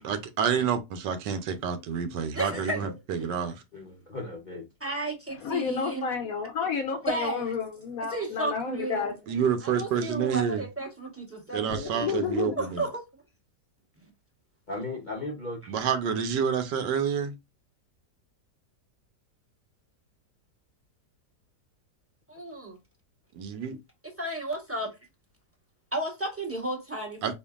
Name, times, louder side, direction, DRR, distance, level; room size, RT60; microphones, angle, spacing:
voice 1, 0.0-3.6 9.3-10.6 11.5-12.8 15.7-17.3 23.3-23.8 27.2-27.3, right 7 dB, 85° right, 1.4 m, -28 dB
voice 2, 2.3-2.9 4.8-6.1 7.0-7.5 8.1-9.1 9.6-12.2 12.6-13.0 22.3-22.8 24.0-24.9 25.9-27.3, right 2 dB, 10° right, 0.9 m, -33 dB
voice 3, 3.7-4.7 14.7-15.8, left 2 dB, 40° left, 0.6 m, -37 dB
voice 4, 5.4-9.1 11.7-12.6, left 6 dB, 65° left, 1.0 m, -31 dB
4.4 x 2.9 x 2.3 m
omnidirectional pair, 1.8 m